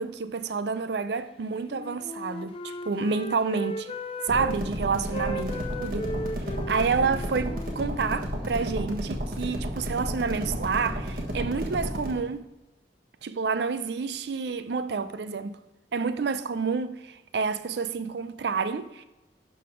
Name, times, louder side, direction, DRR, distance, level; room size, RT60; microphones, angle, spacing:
voice 1, 0.0-3.9 4.3-6.1 6.7-12.5 13.2-15.6 15.9-19.0, right 5 dB, 70° right, 0.5 m, -29 dB
Wind instrument woodwind instrument, 1.6-4.6 5.1-8.9, left 1 dB, 30° left, 0.4 m, -37 dB
sound 1, 4.3-12.2, equal, 55° right, 1.5 m, -32 dB
11.5 x 4.0 x 4.9 m
head